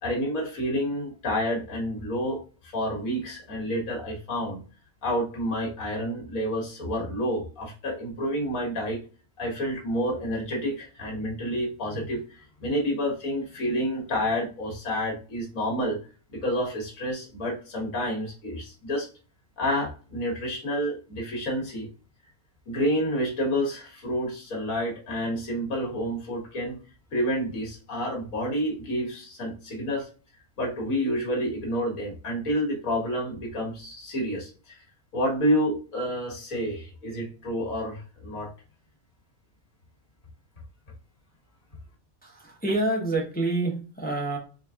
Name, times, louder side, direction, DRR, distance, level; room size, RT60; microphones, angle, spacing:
voice 1, 0.0-4.6 5.0-9.0 9.4-16.0 16.3-19.1 19.6-21.9 22.7-26.8 27.1-30.1 30.6-34.8 35.1-38.5, equal, 75° left, -1 dB, 1.9 m, -29 dB
voice 2, 42.2-44.4, right 2 dB, 10° left, -1 dB, 0.8 m, -27 dB
4.1 x 3.8 x 2.4 m, 0.36 s
omnidirectional pair, 1.5 m